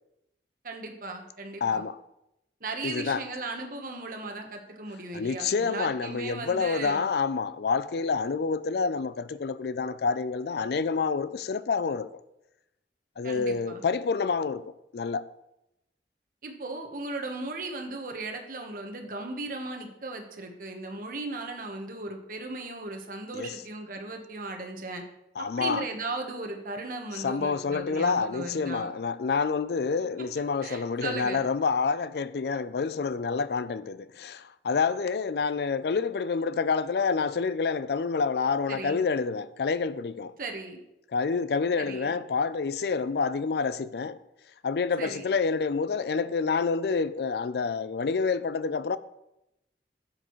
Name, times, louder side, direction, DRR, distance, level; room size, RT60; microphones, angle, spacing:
voice 1, 0.6-1.8 2.6-7.0 13.2-13.8 16.4-25.0 25.4-28.9 30.6-31.4 38.7-39.0 40.4-40.8 41.8-42.1 45.0-45.3, right 2 dB, 50° right, 1.2 m, -37 dB
voice 2, 1.6-2.0 2.8-3.2 5.1-12.1 13.2-15.3 23.3-23.6 25.4-25.9 27.1-40.4 41.1-44.2 44.6-49.0, left 5 dB, 65° left, 0.4 m, -28 dB
10.5 x 7.6 x 3.1 m
head